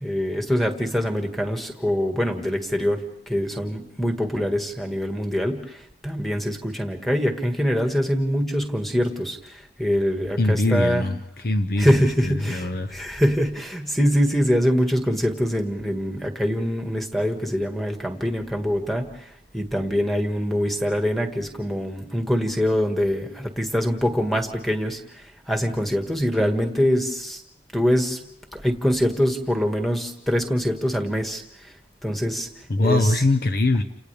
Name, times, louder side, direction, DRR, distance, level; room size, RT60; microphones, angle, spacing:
voice 1, 0.0-3.0 3.3-11.1 11.8-27.4 27.7-28.2 28.5-31.7 32.0-32.5 32.8-33.2, equal, ahead, 3 dB, 1.8 m, -24 dB
voice 2, 10.4-12.9 32.7-33.8, left 2 dB, 50° left, 8 dB, 0.8 m, -22 dB
30.0 x 27.5 x 3.4 m, 0.75 s
head